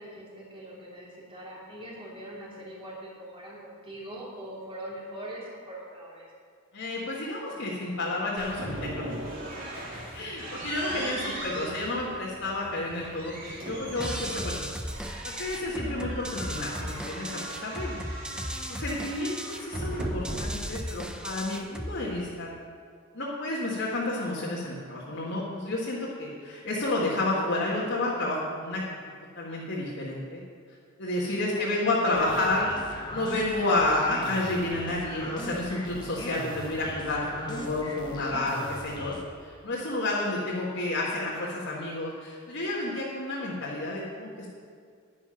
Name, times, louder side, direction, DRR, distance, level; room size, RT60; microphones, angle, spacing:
voice 1, 0.0-6.3 10.9-11.9 31.4-32.7, right 1 dB, 25° right, -5 dB, 3.3 m, -41 dB
voice 2, 6.7-9.3 10.1-14.6 15.4-18.4 18.7-22.5 23.1-28.8 29.4-30.4 31.0-32.6 33.1-39.1 39.4-44.5, left 2 dB, 60° left, -6 dB, 1.9 m, -30 dB
sound 1, 8.4-22.4, right 1 dB, 45° right, 2.8 m, -39 dB
sound 2, 14.0-22.0, equal, 5° right, 0.6 m, -36 dB
sound 3, 32.1-39.2, left 1 dB, 20° left, 1.5 m, -39 dB
10.5 x 10.0 x 5.8 m, 2.1 s
head